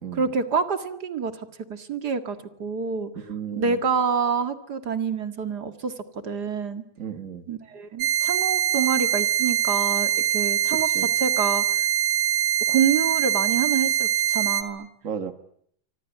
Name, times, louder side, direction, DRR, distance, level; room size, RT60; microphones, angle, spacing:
voice 1, 0.1-3.1 3.5-6.8 7.5-10.9 11.2-11.8 12.7-14.9, right 6 dB, 35° right, 1.7 m, -27 dB
voice 2, 3.2-3.8 7.0-7.5 10.7-11.1 15.0-15.3, right 7 dB, 80° right, 0.7 m, -34 dB
sound 1, 8.0-14.6, right 11 dB, 60° right, 2.8 m, -23 dB
25.5 x 25.5 x 8.9 m
omnidirectional pair, 4.1 m